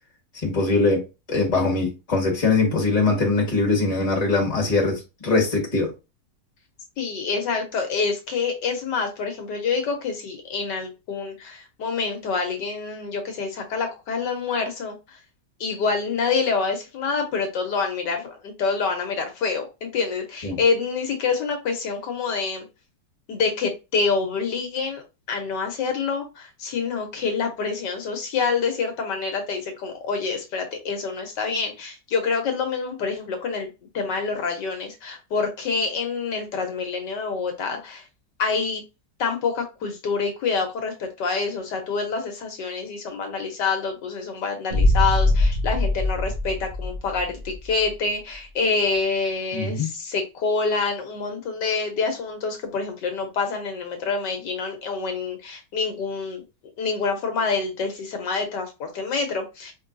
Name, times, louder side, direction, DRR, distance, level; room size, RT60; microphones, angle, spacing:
voice 1, 0.4-5.9 20.4-20.6 49.5-49.9, left 3 dB, 20° left, 1.5 m, -22 dB
voice 2, 7.0-15.2 15.6-22.6 23.3-25.0 25.3-33.7 33.9-38.0 38.4-38.8 39.2-56.4 56.8-59.7, left 4 dB, 75° left, 1.5 m, -27 dB
Boom, 44.7-47.7, left 1 dB, 35° right, 2.1 m, -22 dB
4.5 x 3.6 x 2.5 m
omnidirectional pair, 1.9 m